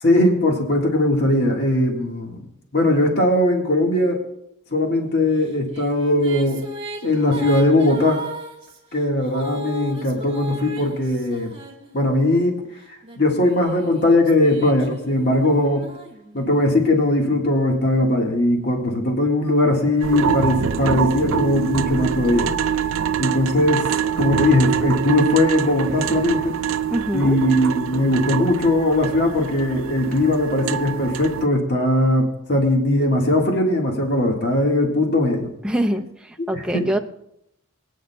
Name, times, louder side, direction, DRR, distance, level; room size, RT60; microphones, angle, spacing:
voice 1, 0.0-2.4 2.7-4.2 4.7-6.6 7.0-8.2 8.9-11.5 11.9-12.6 13.2-15.9 16.3-22.5 23.2-23.9 24.2-26.6 27.1-35.5 36.5-36.9, left 1 dB, 50° left, 1 dB, 1.7 m, -19 dB
Female singing, 5.4-12.4 13.0-16.8, right 1 dB, 30° right, 2.5 m, -37 dB
sound 1, 20.0-31.5, right 8 dB, 70° right, 0.4 m, -25 dB
voice 2, 26.9-27.4 35.6-37.0, right 1 dB, 5° right, 3 dB, 0.6 m, -24 dB
24.0 x 9.1 x 2.3 m, 0.79 s
head